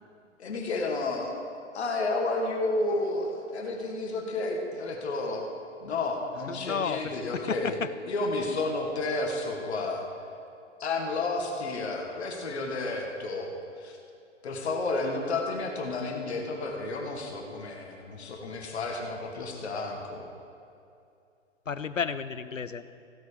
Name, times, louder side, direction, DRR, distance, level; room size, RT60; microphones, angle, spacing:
voice 1, 0.4-1.3 1.7-5.5 5.8-7.8 8.1-10.1 10.8-13.5 13.8-14.0 14.4-20.3, left 2 dB, 60° left, 2 dB, 1.8 m, -31 dB
voice 2, 6.5-7.9 21.7-22.9, left 6 dB, 90° left, 14 dB, 0.6 m, -32 dB
15.5 x 8.2 x 5.1 m, 2.5 s
figure-of-eight pair, 115°, 37 cm